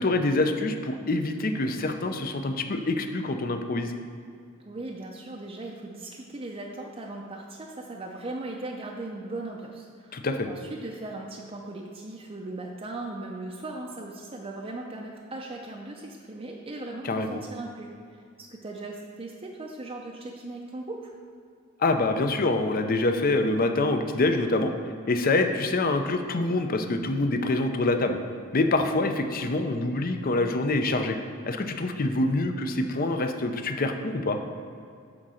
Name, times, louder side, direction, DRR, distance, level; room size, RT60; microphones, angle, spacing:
voice 1, 0.0-3.9 10.1-10.5 17.0-17.4 21.8-24.7 25.1-28.2 28.5-31.2 31.5-34.4, left 2 dB, 45° left, 6 dB, 0.6 m, -25 dB
voice 2, 4.6-21.1, right 2 dB, 25° right, -1 dB, 0.6 m, -38 dB
9.7 x 3.8 x 6.3 m, 2.3 s
head